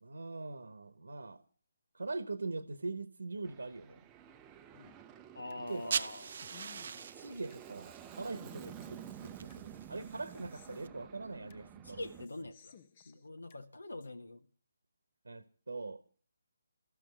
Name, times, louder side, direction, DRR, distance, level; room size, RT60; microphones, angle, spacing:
voice 1, 0.0-1.4 1.9-4.0 5.7-6.0 7.1-12.1 15.2-16.0, right 3 dB, 75° right, 1.1 m, -42 dB
Aircraft, 3.4-12.3, right 10 dB, 15° right, 0.7 m, -51 dB
sound 1, 4.7-5.6 6.0-7.6 8.0-9.6 10.0-11.6 12.0-13.6 14.0-14.1, left 8 dB, 35° left, 1.0 m, -59 dB
voice 2, 5.3-6.4 11.8-12.8 13.0-14.4, left 2 dB, 75° left, 1.4 m, -44 dB
sound 2, 5.7-10.9, right 6 dB, 50° right, 0.7 m, -43 dB
13.5 x 7.5 x 9.8 m
figure-of-eight pair, 145°, 0 cm